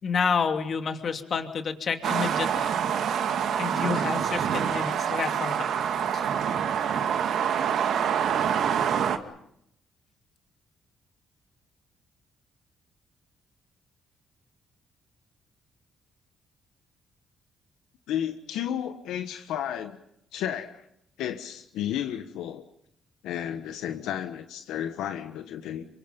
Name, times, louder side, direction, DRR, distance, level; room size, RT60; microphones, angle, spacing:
voice 1, 0.0-2.7 3.6-5.7 6.1-6.3, left 6 dB, 50° left, 6 dB, 2.8 m, -29 dB
sound 1, 2.0-9.2, right 8 dB, 70° right, 2.0 m, -26 dB
voice 2, 18.1-20.0 20.3-20.8 21.2-22.6 23.2-25.9, left 10 dB, 90° left, 7 dB, 1.3 m, -32 dB
28.5 x 25.0 x 5.4 m, 0.77 s
cardioid pair, 90°, 0 cm